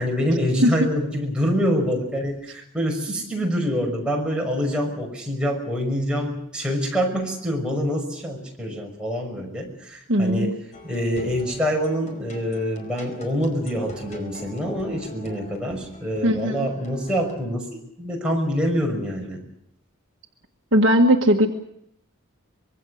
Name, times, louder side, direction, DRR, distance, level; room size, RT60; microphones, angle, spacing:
voice 1, 0.0-10.5 10.8-17.7 18.0-19.4, equal, 5° right, -1 dB, 5.7 m, -25 dB
voice 2, 10.1-10.6 16.2-16.7 20.7-21.5, equal, 60° right, 3 dB, 1.6 m, -18 dB
sound 1, 10.7-17.4, left 1 dB, 35° left, 4.7 m, -43 dB
25.0 x 22.5 x 6.5 m, 0.75 s
head